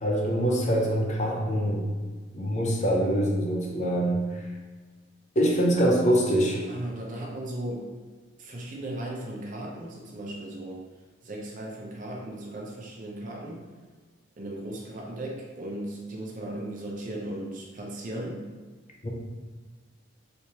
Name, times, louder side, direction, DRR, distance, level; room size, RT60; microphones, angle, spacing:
voice 1, 0.0-1.9 2.3-4.2 5.4-6.6 19.0-19.1, equal, 35° left, -1 dB, 0.5 m, -24 dB
voice 2, 6.7-7.9 8.4-10.8 11.2-13.6 14.4-18.5, right 1 dB, 40° right, -2 dB, 0.6 m, -36 dB
3.4 x 3.0 x 2.8 m, 1.4 s
head